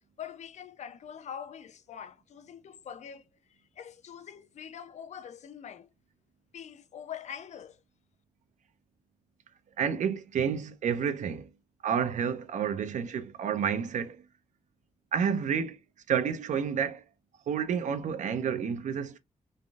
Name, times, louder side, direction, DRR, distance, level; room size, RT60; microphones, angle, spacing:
voice 1, 0.2-3.2 3.8-5.9 6.5-7.8, left 8 dB, 70° left, 0.5 m, -44 dB
voice 2, 9.8-11.5 11.8-14.2 15.1-15.8 16.1-17.0 17.5-19.2, right 7 dB, 85° right, 0.5 m, -30 dB
3.3 x 2.5 x 2.3 m
wide cardioid pair, 170°, 12 cm